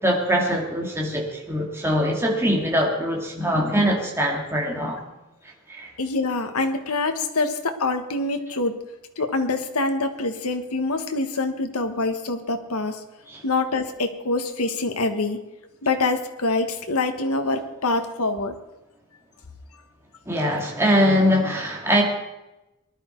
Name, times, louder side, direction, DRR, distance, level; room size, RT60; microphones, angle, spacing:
voice 1, 0.0-5.0 5.7-5.9 13.3-13.4 20.3-22.0, equal, 10° right, -1 dB, 2.3 m, -22 dB
voice 2, 6.0-8.7 9.2-13.0 13.4-15.4 15.8-18.5, left 3 dB, 85° left, 7 dB, 1.3 m, -25 dB
20.0 x 11.0 x 4.5 m, 0.97 s
head